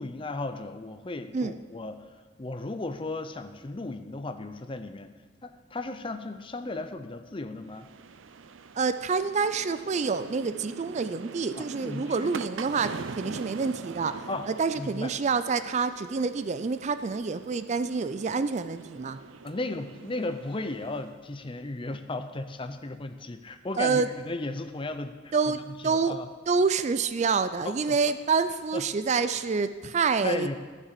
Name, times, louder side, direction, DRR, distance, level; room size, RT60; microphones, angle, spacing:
voice 1, 0.0-2.1 2.4-5.1 5.4-7.9 11.6-12.3 14.3-14.5 14.8-15.1 19.4-26.3 27.6-28.0 28.7-28.8 30.2-30.6, left 2 dB, 25° left, 9 dB, 0.6 m, -35 dB
sound 1, 7.7-21.2, right 5 dB, 85° right, 0.6 m, -43 dB
voice 2, 8.8-19.2 23.8-24.1 25.3-26.1 26.5-30.6, right 5 dB, 35° right, 12 dB, 0.4 m, -27 dB
12.5 x 6.8 x 7.5 m, 1.4 s
head